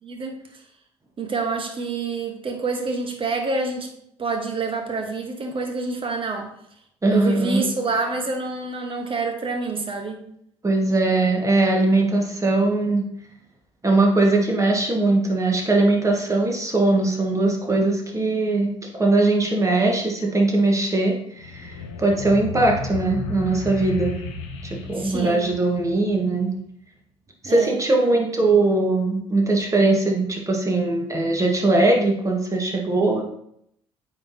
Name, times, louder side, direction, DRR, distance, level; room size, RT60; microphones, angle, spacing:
voice 1, 0.0-0.4 1.2-3.9 4.2-6.5 7.1-10.2 24.9-25.5 27.4-27.7, right 3 dB, 35° right, 4 dB, 1.3 m, -27 dB
voice 2, 7.0-7.7 10.6-13.0 13.8-24.2 24.6-26.5 27.4-33.2, right 2 dB, 20° right, 0 dB, 1.6 m, -20 dB
sound 1, 21.4-26.4, left 4 dB, 75° left, 0.9 m, -34 dB
8.5 x 4.1 x 2.9 m, 0.73 s
figure-of-eight pair, 50°, 15 cm